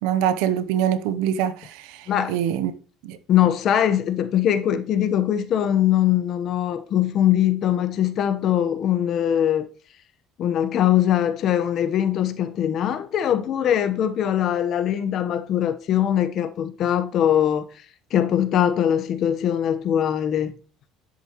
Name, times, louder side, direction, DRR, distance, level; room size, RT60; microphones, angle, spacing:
voice 1, 0.0-2.7 3.0-3.2, right 10 dB, 85° right, 0.8 m, -24 dB
voice 2, 3.3-9.7 10.4-17.6 18.1-20.5, left 10 dB, 55° left, 1.0 m, -21 dB
10.5 x 7.8 x 3.1 m
cardioid pair, 110°, 0 cm